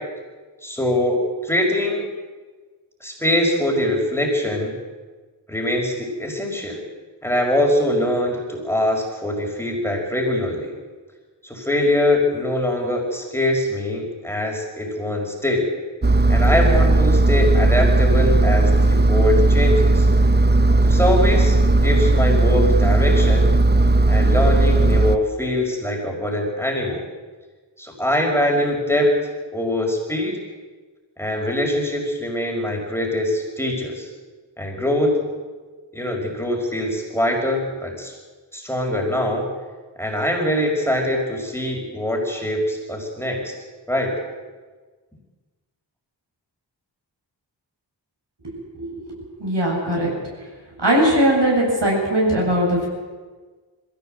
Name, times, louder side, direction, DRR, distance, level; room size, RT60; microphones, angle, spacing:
voice 1, 0.6-2.1 3.0-4.7 5.5-6.8 7.2-10.7 11.4-15.7 16.3-20.1 20.9-23.5 24.1-27.1 27.8-29.2 29.5-30.4 31.2-34.1 34.6-35.2 35.9-38.1 38.5-39.5 40.0-43.5 43.9-44.2, left 1 dB, 5° left, -1 dB, 5.4 m, -23 dB
Engine, 16.0-25.2, right 2 dB, 25° right, 0.8 m, -16 dB
voice 2, 49.4-50.1 50.8-52.9, right 1 dB, 65° right, -2 dB, 7.8 m, -19 dB
22.0 x 16.0 x 7.9 m, 1.4 s
wide cardioid pair, 45°, 44 cm